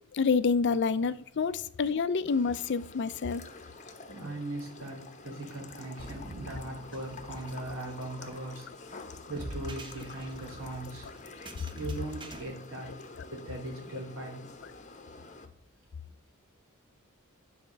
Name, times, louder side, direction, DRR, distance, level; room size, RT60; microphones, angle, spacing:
voice 1, 0.1-3.4, left 5 dB, 55° left, 0.5 m, -28 dB
sound 1, 2.3-15.5, left 3 dB, 35° left, 1.0 m, -48 dB
voice 2, 4.0-8.7 9.3-11.1 11.7-12.9 13.3-14.4, right 2 dB, 70° right, 3.3 m, -39 dB
sound 2, 6.0-12.4, right 1 dB, 20° right, 0.9 m, -47 dB
10.5 x 4.3 x 6.6 m
head